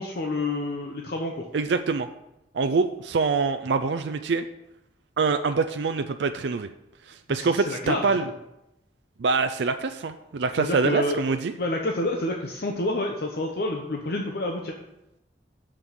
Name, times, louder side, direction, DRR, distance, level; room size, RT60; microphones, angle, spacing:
voice 1, 0.0-1.5 7.3-8.0 10.6-11.2 11.6-14.8, left 1 dB, 60° left, 2 dB, 0.8 m, -28 dB
voice 2, 1.5-2.1 2.5-4.4 5.2-6.7 7.1-8.3 9.2-11.5, right 4 dB, 75° right, 8 dB, 0.4 m, -25 dB
6.3 x 5.9 x 6.9 m, 0.88 s
head